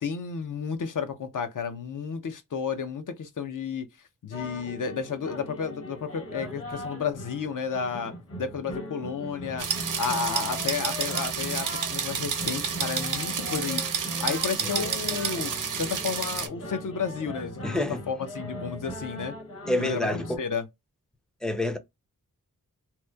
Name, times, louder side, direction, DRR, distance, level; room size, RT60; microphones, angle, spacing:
voice 1, 0.0-3.9 4.2-19.3 19.8-20.7, left 6 dB, 65° left, 0.6 m, -32 dB
sound 1, 4.3-20.4, left 1 dB, 40° left, 1.0 m, -39 dB
sound 2, 9.6-16.5, right 7 dB, 65° right, 0.6 m, -30 dB
voice 2, 17.6-18.0 19.7-20.4 21.4-21.8, left 1 dB, ahead, 0.4 m, -28 dB
2.9 x 2.1 x 2.2 m
wide cardioid pair, 85°, 34 cm